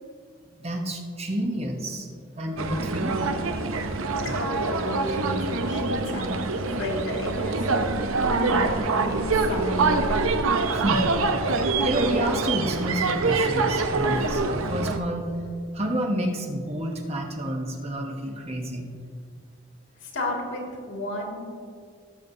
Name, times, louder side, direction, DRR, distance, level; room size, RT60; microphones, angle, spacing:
voice 1, 0.6-2.1 2.3-3.2 10.7-11.0 11.5-15.4 15.7-18.9, equal, 30° right, 2 dB, 0.9 m, -29 dB
sound 1, 2.6-15.0, right 3 dB, 85° right, 0.7 m, -25 dB
voice 2, 4.2-6.4 6.7-7.9 8.2-8.7 8.9-10.2 20.0-21.4, left 1 dB, 70° left, -1 dB, 2.2 m, -32 dB
17.5 x 7.3 x 2.7 m, 2.1 s
head